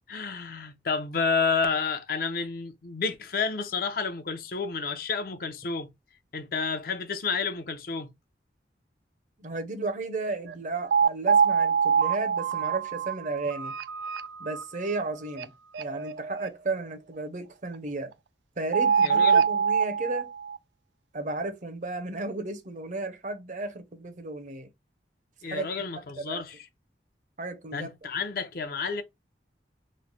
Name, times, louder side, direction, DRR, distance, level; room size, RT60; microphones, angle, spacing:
voice 1, 0.0-5.9 6.3-8.1 19.0-19.4 25.4-26.6 27.7-29.0, left 5 dB, 55° left, 0.6 m, -30 dB
voice 2, 9.4-13.7 14.4-15.5 15.8-18.1 18.6-20.3 21.1-24.7 25.4-25.7 26.2-26.4 27.4-27.9, right 3 dB, 45° right, 0.6 m, -34 dB
sound 1, 10.5-10.6 10.9-14.6 15.0-15.1 15.4-15.5 15.7-16.5 18.7-20.6, right 6 dB, 85° right, 0.4 m, -24 dB
3.1 x 2.1 x 3.9 m
head